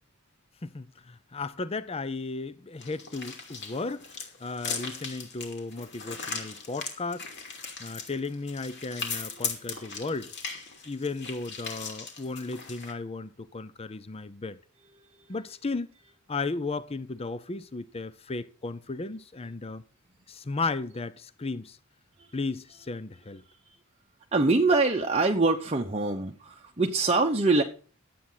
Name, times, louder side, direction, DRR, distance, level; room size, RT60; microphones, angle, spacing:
voice 1, 0.6-4.1 4.4-7.3 7.8-10.3 10.8-14.6 15.3-15.9 16.3-19.8 20.3-21.8 22.3-23.4, left 3 dB, 25° left, 0.6 m, -35 dB
sound 1, 2.8-12.9, left 5 dB, 50° left, 2.7 m, -38 dB
voice 2, 9.4-10.0 15.0-15.3 22.2-22.3 23.7-23.8 24.3-27.6, right 3 dB, 30° right, 0.9 m, -25 dB
12.0 x 8.5 x 5.7 m
head